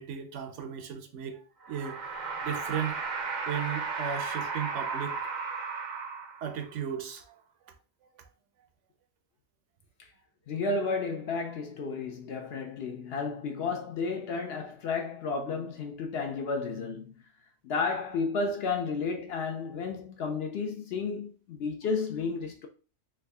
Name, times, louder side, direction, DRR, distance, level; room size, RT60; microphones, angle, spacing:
voice 1, 0.0-2.0 2.4-3.0 3.5-5.2 6.4-7.3, right 8 dB, 75° right, 0.9 m, -35 dB
sound 1, 1.6-6.7, right 5 dB, 50° right, 0.5 m, -34 dB
voice 2, 10.5-17.2 17.6-22.7, left 4 dB, 65° left, 0.7 m, -32 dB
3.5 x 2.2 x 3.3 m
omnidirectional pair, 1.3 m